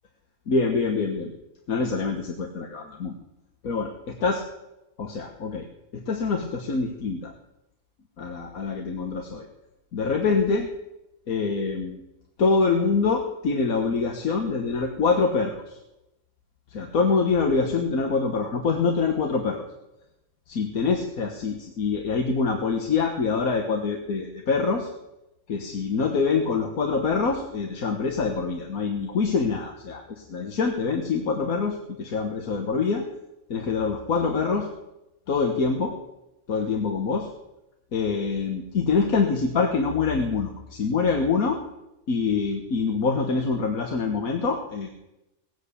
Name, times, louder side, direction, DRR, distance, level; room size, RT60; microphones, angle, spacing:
voice 1, 0.5-1.3 1.7-3.2 3.6-3.9 4.2-4.4 5.0-5.7 5.9-7.3 8.2-9.5 9.9-10.7 11.3-12.0 12.4-15.8 16.7-19.6 20.5-24.9 25.5-33.1 33.5-34.7 35.3-36.0 36.5-37.3 37.9-41.6 42.1-44.9, left 4 dB, 85° left, 3 dB, 1.8 m, -25 dB
18.0 x 8.1 x 8.3 m, 0.92 s
omnidirectional pair, 1.5 m